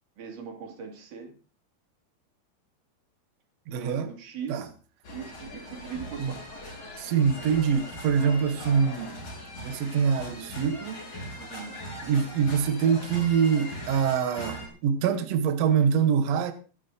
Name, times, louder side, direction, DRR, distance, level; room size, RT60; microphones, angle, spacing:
voice 1, 0.2-1.3 3.7-4.7 5.1-6.4 11.4-11.8, right 6 dB, 55° right, 3.8 m, -40 dB
voice 2, 3.7-4.1 4.5-4.7 6.2-6.4 7.0-9.2 9.6-11.1 12.0-16.5, right 7 dB, 75° right, 1.5 m, -25 dB
sound 1, 5.0-14.7, left 1 dB, 50° left, 6.6 m, -40 dB
22.0 x 12.5 x 2.8 m
omnidirectional pair, 4.6 m